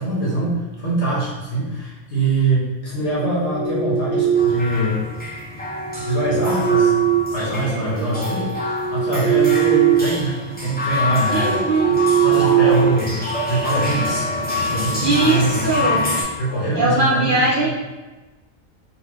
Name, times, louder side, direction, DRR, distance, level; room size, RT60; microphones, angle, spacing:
voice 1, 0.0-5.0 6.0-6.9 7.3-8.6 8.9-14.3 14.7-15.7 16.4-17.7, right 2 dB, 60° left, -7 dB, 1.7 m, -23 dB
sound 1, 3.2-4.7 5.7-7.9 8.3-10.2 10.5-10.7 11.2-13.6, right 10 dB, 85° right, 1.0 m, -20 dB
sound 2, 4.3-16.2, left 2 dB, 10° left, 0.8 m, -26 dB
voice 2, 11.3-11.9 15.0-16.1 16.7-17.7, right 2 dB, 55° right, -5 dB, 0.6 m, -19 dB
4.0 x 3.9 x 3.0 m, 1.2 s
omnidirectional pair, 1.3 m